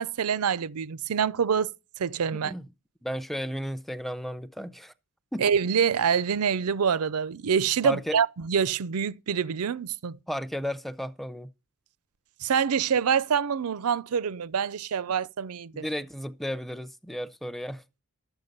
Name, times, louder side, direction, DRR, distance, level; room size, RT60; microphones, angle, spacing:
voice 1, 0.0-1.7 2.0-2.5 5.4-10.2 12.4-15.8, right 7 dB, 80° right, 0.5 m, -26 dB
voice 2, 2.3-2.7 3.0-4.9 5.3-5.5 7.8-8.2 10.3-11.5 15.7-17.8, equal, ahead, 0.5 m, -34 dB
12.5 x 8.1 x 5.3 m
head